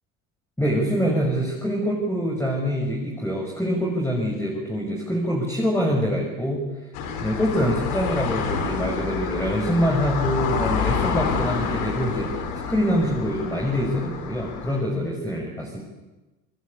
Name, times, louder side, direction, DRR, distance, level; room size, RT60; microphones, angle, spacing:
voice 1, 0.6-6.6 7.2-12.4 12.7-15.8, equal, 5° left, -1 dB, 6.6 m, -25 dB
sound 1, 6.9-14.8, left 6 dB, 80° left, 5.0 m, -28 dB
28.5 x 20.5 x 8.7 m, 1.1 s
supercardioid pair, 85°, 43 cm